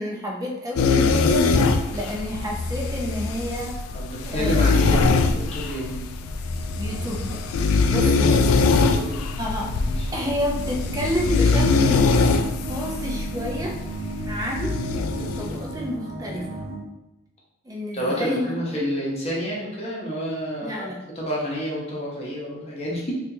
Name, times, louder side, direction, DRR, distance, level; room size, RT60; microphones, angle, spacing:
voice 1, 0.0-1.5 1.9-3.8 4.2-5.0 6.8-7.5 7.9-8.5 9.4-9.7 10.1-12.1 12.7-13.8 14.2-14.8 15.1-16.6 17.6-18.8 20.6-21.0, equal, 15° right, -2 dB, 0.6 m, -30 dB
sound 1, 0.8-15.6, left 4 dB, 85° left, 0.3 m, -22 dB
sound 2, 3.3-16.8, right 2 dB, 65° right, 0.9 m, -37 dB
voice 2, 3.9-6.0 8.0-9.2 9.8-10.1 17.9-23.1, equal, 30° left, -4 dB, 0.9 m, -29 dB
4.2 x 2.4 x 2.8 m, 0.95 s
head